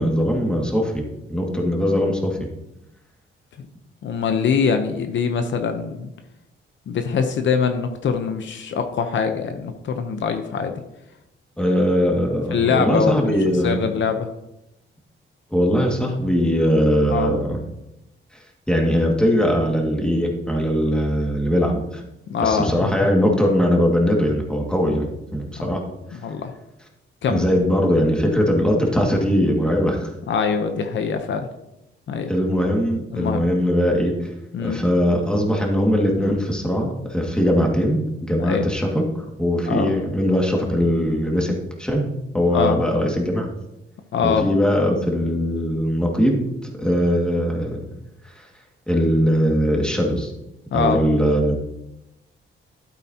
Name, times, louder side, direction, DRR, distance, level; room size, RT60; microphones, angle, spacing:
voice 1, 0.0-2.5 11.6-13.9 15.5-17.6 18.7-22.0 22.4-25.1 25.3-25.8 26.1-26.2 27.3-30.1 32.3-34.3 34.6-41.5 41.8-43.5 44.2-47.8 48.4-48.5 48.9-50.3 50.7-51.6, equal, 5° left, 0 dB, 2.1 m, -20 dB
voice 2, 4.0-6.1 6.9-10.8 12.5-13.3 13.6-14.3 17.1-17.3 22.3-22.9 25.6-25.8 26.1-26.5 27.2-27.5 30.3-31.5 32.1-32.3 33.1-33.5 34.5-34.8 38.4-38.7 39.7-39.9 42.5-42.8 44.1-44.5 50.7-51.0, left 6 dB, 65° left, 6 dB, 0.9 m, -23 dB
12.0 x 8.5 x 2.9 m, 0.89 s
cardioid pair, 100°, 21 cm